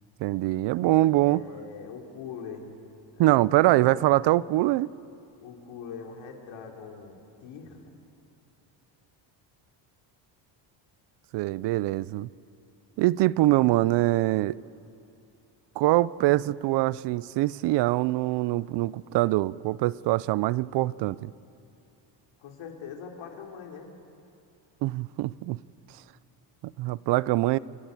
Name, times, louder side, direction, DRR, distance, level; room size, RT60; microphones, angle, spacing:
voice 1, 0.2-1.4 3.2-4.9 11.3-12.3 13.0-14.6 15.8-21.3 24.8-25.6 26.6-27.6, right 17 dB, 60° right, 0.5 m, -24 dB
voice 2, 1.1-2.8 3.2-4.0 5.4-7.9 22.4-23.9, left 6 dB, 75° left, 3.2 m, -42 dB
28.5 x 13.5 x 9.2 m
cardioid pair, 165°, 47 cm